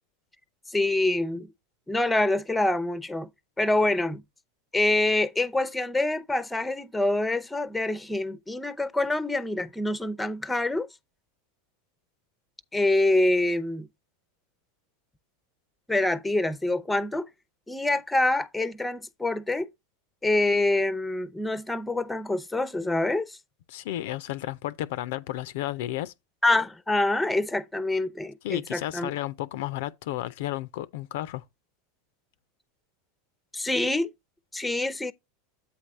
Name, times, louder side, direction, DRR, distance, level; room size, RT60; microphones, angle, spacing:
voice 1, 0.7-1.5 1.9-3.3 3.6-4.2 4.7-10.9 12.7-13.9 15.9-17.3 17.7-19.7 20.2-23.4 26.4-29.1 33.5-34.1 34.5-35.1, left 2 dB, 5° left, 0.6 m, -26 dB
voice 2, 23.7-26.1 28.4-31.4, left 14 dB, 65° left, 0.4 m, -32 dB
8.2 x 3.2 x 5.3 m
hypercardioid pair, 90°, 0 cm